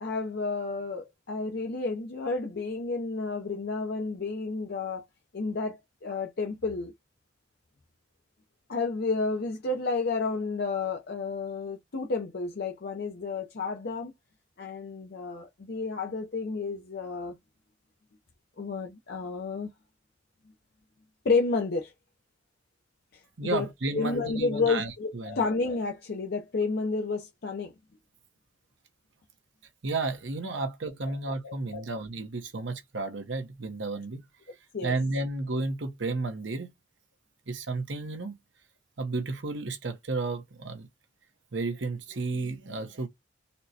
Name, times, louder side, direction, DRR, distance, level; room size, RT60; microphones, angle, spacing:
voice 1, 0.0-5.0 5.3-6.9 8.7-14.1 14.6-17.3 18.6-19.7 21.2-21.9 23.1-23.7 23.9-27.7 30.5-30.6 31.4-31.9 34.7-34.9, left 4 dB, 55° left, 0.6 m, -31 dB
voice 2, 23.4-25.4 29.8-34.2 34.8-36.7 37.5-38.3 39.0-40.9 41.5-43.1, right 3 dB, 70° right, 0.8 m, -32 dB
4.1 x 2.1 x 2.7 m
head